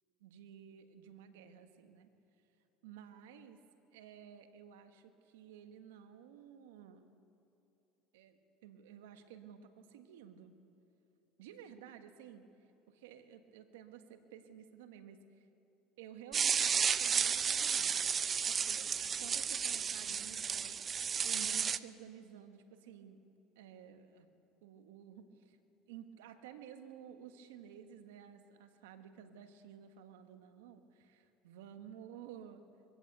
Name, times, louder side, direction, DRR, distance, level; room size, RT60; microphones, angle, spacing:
voice 1, 0.2-2.1 2.8-3.6 3.9-7.1 8.1-10.5 11.4-12.5 12.9-15.5 16.0-23.2 23.5-25.6 25.9-32.7, right 9 dB, 85° right, 8 dB, 1.5 m, -54 dB
sound 1, 16.3-21.8, right 7 dB, 35° right, 0.6 m, -33 dB
22.0 x 15.5 x 8.1 m, 2.8 s
supercardioid pair, 90°, 0 cm